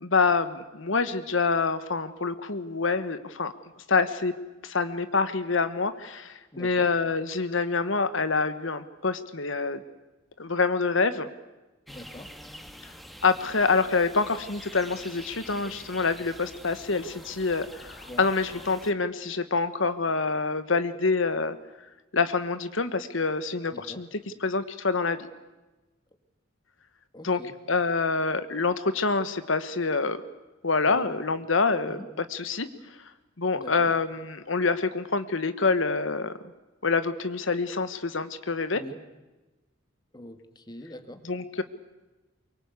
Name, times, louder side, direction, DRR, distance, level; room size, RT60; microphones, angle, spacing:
voice 1, 0.0-3.5 3.9-4.3 4.6-9.8 10.4-11.3 13.2-21.6 22.1-24.1 24.4-25.2 27.2-27.4 27.7-30.2 30.6-32.0 32.3-32.7 33.4-36.3 36.8-38.8 41.3-41.6, left 4 dB, 75° left, 12 dB, 1.3 m, -26 dB
voice 2, 6.5-6.9 11.9-12.3 18.1-18.3 23.7-24.0 27.1-27.5 30.8-31.1 31.9-32.1 33.5-33.9 38.7-39.0 40.1-41.2, left 1 dB, 20° left, 8 dB, 2.1 m, -43 dB
sound 1, 11.9-18.9, equal, ahead, 1.6 m, -46 dB
24.0 x 23.0 x 8.2 m, 1.1 s
head